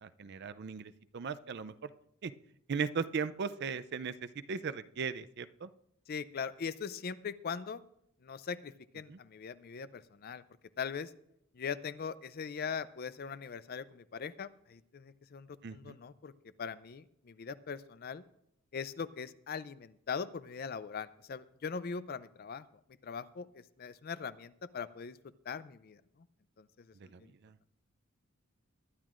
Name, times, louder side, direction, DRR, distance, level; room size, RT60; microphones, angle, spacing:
voice 1, 0.0-1.9 2.2-2.3 2.7-4.1 4.5-5.7 9.1-9.2 15.6-16.0 27.1-27.5, right 5 dB, 50° right, 13 dB, 0.4 m, -37 dB
voice 2, 6.1-7.8 8.2-10.4 10.8-11.1 11.5-16.3 16.6-18.2 18.7-22.7 23.0-25.2 25.5-26.0 26.6-26.9 27.2-27.3, left 6 dB, 45° left, 15 dB, 0.4 m, -41 dB
21.0 x 10.5 x 2.5 m, 0.75 s
head